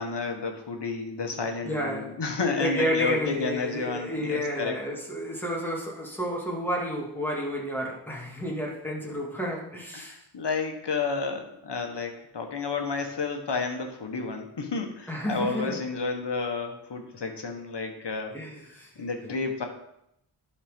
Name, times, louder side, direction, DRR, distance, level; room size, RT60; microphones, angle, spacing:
voice 1, 0.0-4.7 9.9-18.4 19.0-19.7, left 4 dB, 55° left, 4 dB, 1.6 m, -31 dB
voice 2, 1.6-2.2 2.6-10.2 15.1-15.8 18.3-18.9, equal, 5° left, -2 dB, 2.4 m, -31 dB
11.0 x 4.5 x 5.3 m, 0.78 s
wide cardioid pair, 80°, 49 cm